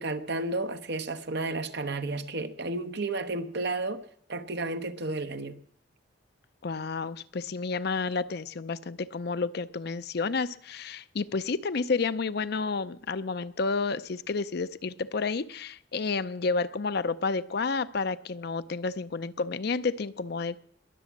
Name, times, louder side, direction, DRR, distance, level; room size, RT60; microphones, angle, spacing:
voice 1, 0.0-4.0 4.3-5.6, right 2 dB, 60° right, 1.0 m, -32 dB
voice 2, 6.6-20.6, left 4 dB, 55° left, 0.5 m, -30 dB
21.5 x 8.3 x 7.2 m
head